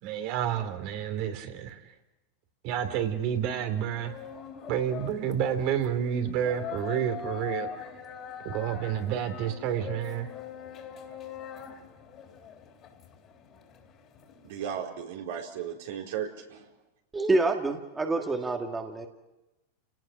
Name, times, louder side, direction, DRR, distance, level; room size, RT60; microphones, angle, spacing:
voice 1, 0.0-1.8 2.6-4.2 4.7-7.7 8.4-10.3, right 9 dB, 55° right, 2.9 m, -29 dB
sound 1, 3.9-14.8, left 8 dB, 40° left, 3.5 m, -43 dB
voice 2, 14.4-16.6, right 8 dB, 70° right, 4.1 m, -35 dB
voice 3, 17.1-19.1, right 2 dB, 15° right, 1.9 m, -27 dB
29.5 x 18.5 x 6.2 m
hypercardioid pair, 110°, 0 cm